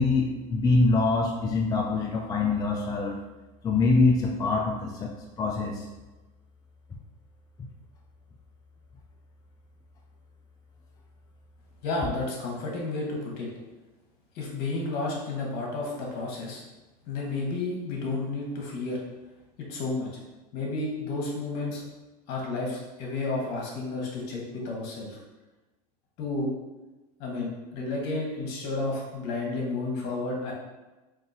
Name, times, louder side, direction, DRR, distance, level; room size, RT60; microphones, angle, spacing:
voice 1, 0.0-3.2 3.6-5.9, left 3 dB, 20° left, 0 dB, 0.4 m, -24 dB
voice 2, 11.8-13.5 14.3-16.6 17.1-19.0 19.7-20.1 20.5-21.8 22.3-25.2 26.2-26.5 27.2-30.5, left 3 dB, 55° left, -2 dB, 1.2 m, -31 dB
3.7 x 2.6 x 2.6 m, 1.1 s
supercardioid pair, 105°, 20 cm